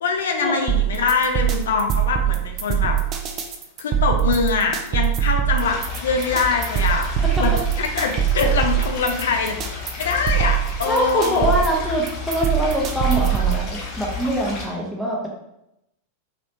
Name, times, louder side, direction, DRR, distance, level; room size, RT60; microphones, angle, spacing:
voice 1, 0.0-3.0 3.8-7.1 7.4-7.5 7.8-9.6 10.0-11.5, left 5 dB, 60° left, 3 dB, 0.5 m, -23 dB
sound 1, 0.7-13.7, right 10 dB, 35° right, 0.4 m, -22 dB
sound 2, 5.6-14.7, left 5 dB, 35° left, 0.7 m, -32 dB
voice 2, 10.9-15.3, equal, 5° right, -5 dB, 0.7 m, -23 dB
3.0 x 2.9 x 2.7 m, 0.84 s
figure-of-eight pair, 90°, 0 cm